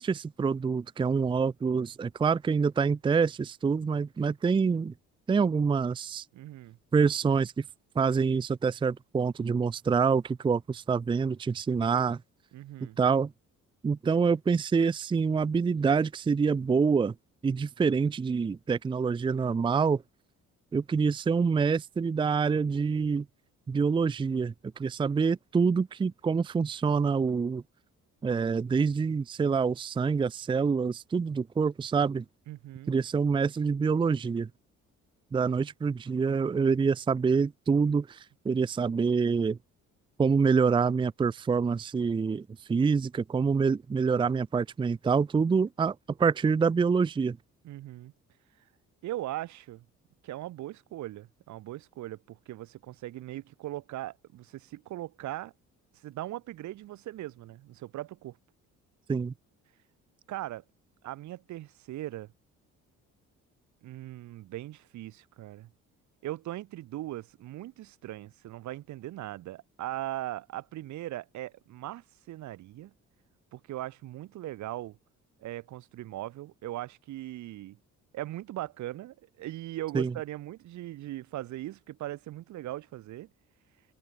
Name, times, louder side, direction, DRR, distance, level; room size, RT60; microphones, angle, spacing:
voice 1, 0.0-4.9 5.3-6.2 6.9-7.6 8.0-12.2 13.0-13.3 13.8-17.1 17.4-20.0 20.7-23.3 23.7-27.6 28.2-32.2 32.9-34.5 35.3-39.6 40.2-47.4 59.1-59.3 79.9-80.1, right 5 dB, 15° right, 0.5 m, -26 dB
voice 2, 6.3-6.8 12.5-13.0 32.5-32.9 47.6-48.1 49.0-49.8 50.2-55.5 56.0-58.4 60.3-60.6 61.0-62.3 63.8-65.7 66.2-72.9 73.5-75.0 75.4-77.8 78.1-83.3, right 15 dB, 75° right, 1.7 m, -39 dB
open air
cardioid pair, 160°, 29 cm